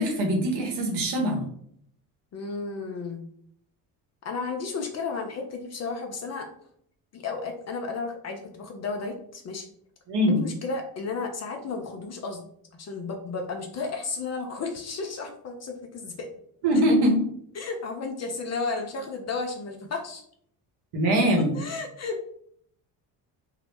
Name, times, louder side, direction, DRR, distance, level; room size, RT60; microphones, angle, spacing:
voice 1, 0.0-1.4 10.1-10.4 16.6-17.2 20.9-21.6, equal, 55° right, 2 dB, 0.9 m, -22 dB
voice 2, 2.3-3.2 4.2-6.5 7.1-9.7 10.3-12.4 12.8-16.3 17.5-20.2 21.4-22.2, left 4 dB, 35° left, 3 dB, 0.4 m, -33 dB
2.1 x 2.0 x 3.1 m, 0.65 s
hypercardioid pair, 60°, 49 cm